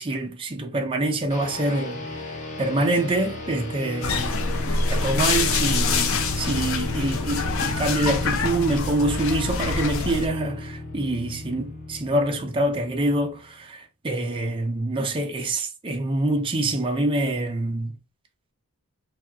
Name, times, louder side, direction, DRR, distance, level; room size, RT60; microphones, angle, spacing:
voice 1, 0.0-2.2 2.6-4.4 4.7-18.0, right 1 dB, 25° right, 0.4 m, -26 dB
sound 1, 1.3-13.5, left 2 dB, 35° left, 0.8 m, -34 dB
sound 2, 4.0-10.3, left 4 dB, 60° left, 0.5 m, -25 dB
2.8 x 2.3 x 3.3 m
head